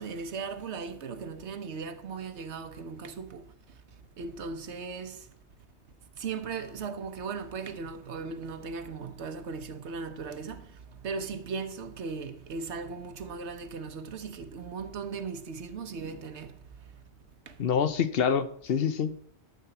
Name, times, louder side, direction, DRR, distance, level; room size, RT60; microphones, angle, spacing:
voice 1, 0.0-3.4 4.2-5.2 6.2-10.7 11.0-16.5 17.5-17.6, right 5 dB, 85° right, 1.2 m, -37 dB
voice 2, 17.6-19.3, left 7 dB, 65° left, 0.9 m, -26 dB
12.0 x 4.4 x 8.0 m
omnidirectional pair, 1.1 m